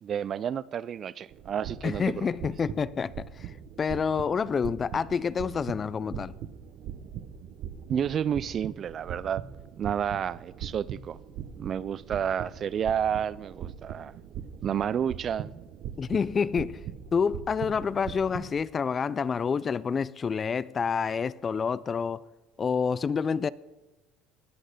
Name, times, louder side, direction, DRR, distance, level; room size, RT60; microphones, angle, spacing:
voice 1, 0.0-2.3 7.9-9.4 9.8-11.2 11.6-14.1 14.6-15.6, right 8 dB, 45° right, 0.3 m, -30 dB
sound 1, 1.3-18.6, right 9 dB, 60° right, 0.9 m, -41 dB
voice 2, 1.8-3.5 3.8-6.3 16.0-16.8 17.1-22.2 22.6-23.5, left 6 dB, 30° left, 0.3 m, -28 dB
19.0 x 6.4 x 5.1 m
supercardioid pair, 100°, 0 cm